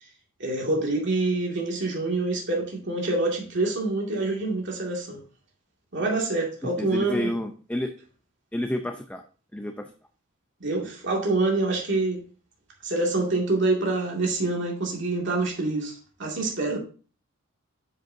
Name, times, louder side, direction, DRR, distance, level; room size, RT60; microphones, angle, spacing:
voice 1, 0.4-5.2 5.9-7.3 10.6-12.2 12.8-16.8, right 2 dB, 60° right, 2.2 m, -26 dB
voice 2, 6.8-7.9 8.5-9.2 9.5-9.9, left 1 dB, 5° left, 0.5 m, -29 dB
9.3 x 7.6 x 2.7 m
head